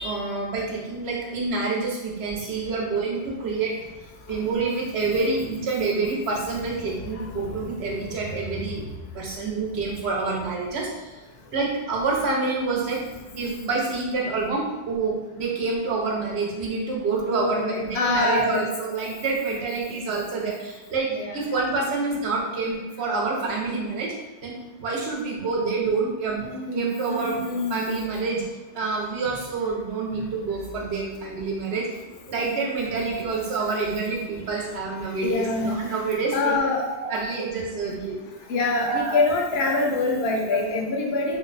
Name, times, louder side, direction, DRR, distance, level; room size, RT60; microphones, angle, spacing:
voice 1, 0.0-3.8 4.3-8.8 9.1-11.1 11.5-13.0 13.3-24.1 24.4-27.4 27.7-28.5 28.7-31.9 32.3-38.2 38.9-39.2 39.6-39.7 40.5-40.6, right 4 dB, 80° right, -1 dB, 1.0 m, -27 dB
voice 2, 7.1-8.1 17.3-18.7 21.1-21.4 26.4-27.8 35.2-35.8 36.3-36.8 37.9-38.0 38.5-41.4, left 3 dB, 75° left, 1 dB, 0.8 m, -25 dB
2.6 x 2.1 x 3.8 m, 1.2 s
omnidirectional pair, 1.1 m